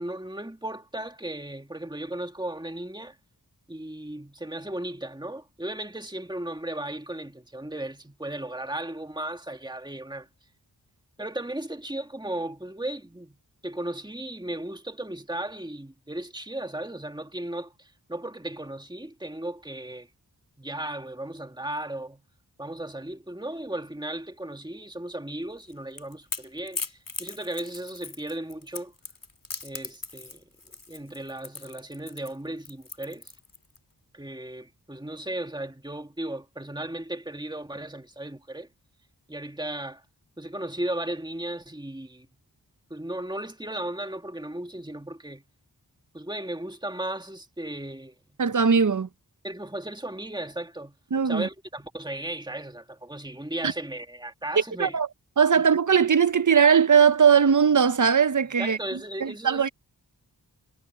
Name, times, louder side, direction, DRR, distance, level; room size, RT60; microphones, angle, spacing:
voice 1, 0.0-3.2 3.7-10.3 11.2-13.4 13.6-20.1 20.6-22.2 22.6-28.9 29.6-30.4 30.9-33.3 34.1-38.7 39.3-40.0 40.4-42.3 42.9-45.4 46.1-48.2 49.4-51.0 51.2-55.0 58.6-59.7, right 1 dB, 10° right, 2.3 m, -35 dB
Crackle / Crack, 25.6-33.8, left 3 dB, 55° left, 2.6 m, -39 dB
voice 2, 48.4-49.1 51.1-51.5 54.8-55.1 55.4-58.8 59.2-59.7, right 6 dB, 50° right, 0.8 m, -19 dB
wide cardioid pair, 55°, 39 cm